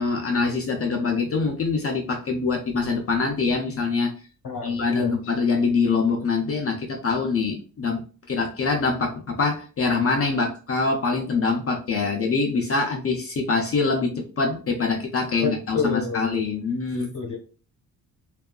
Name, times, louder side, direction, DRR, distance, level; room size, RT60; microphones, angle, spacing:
voice 1, 0.0-4.1 4.6-17.1, left 4 dB, 40° left, 2 dB, 0.4 m, -24 dB
voice 2, 4.4-5.3 15.4-16.5 16.9-17.4, left 4 dB, 60° left, 0 dB, 0.9 m, -29 dB
2.6 x 2.3 x 2.2 m, 0.37 s
cardioid pair, 115°, 39 cm